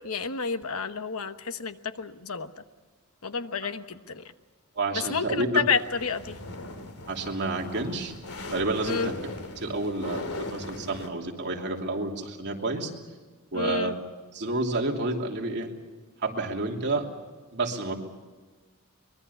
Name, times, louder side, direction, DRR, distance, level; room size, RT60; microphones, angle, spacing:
voice 1, 0.0-2.5 3.2-4.2 4.9-6.4 8.8-9.1 13.5-13.9, left 5 dB, 70° left, 10 dB, 1.1 m, -30 dB
voice 2, 4.7-5.6 7.1-8.1 8.5-9.1 9.6-12.9 13.5-13.9 14.3-15.7 16.2-17.1 17.5-17.9, right 2 dB, 50° right, 1 dB, 3.0 m, -29 dB
sound 1, 5.7-11.1, left 2 dB, 90° left, 2.8 m, -38 dB
24.0 x 21.5 x 7.1 m, 1.4 s
head